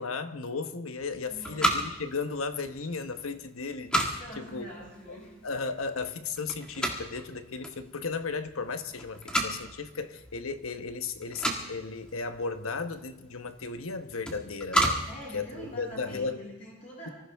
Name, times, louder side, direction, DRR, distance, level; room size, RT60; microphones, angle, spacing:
voice 1, 0.0-4.7 5.1-5.2 5.4-15.0 15.3-16.4, left 4 dB, 80° left, 9 dB, 1.1 m, -35 dB
sound 1, 1.0-16.3, right 1 dB, 5° left, 1.7 m, -34 dB
voice 2, 1.3-1.9 4.2-5.3 15.1-17.1, left 1 dB, 35° left, -5 dB, 6.5 m, -44 dB
24.5 x 15.0 x 3.5 m, 0.99 s
head